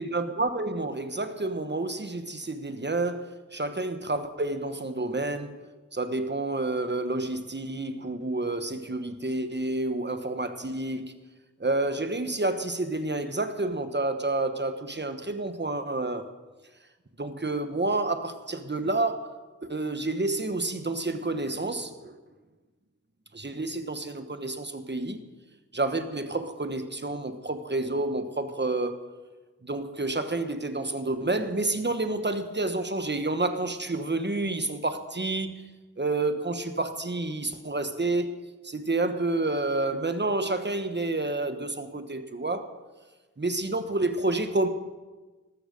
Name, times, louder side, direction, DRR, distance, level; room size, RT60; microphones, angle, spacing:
voice 1, 0.0-5.7 5.9-11.1 11.6-16.3 17.2-19.3 19.6-22.2 23.3-25.3 25.7-29.0 29.6-35.7 36.0-38.3 38.6-42.6 43.4-44.7, right 2 dB, 35° right, 9 dB, 1.1 m, -29 dB
13.5 x 13.0 x 5.2 m, 1.2 s
wide cardioid pair, 60°, 32 cm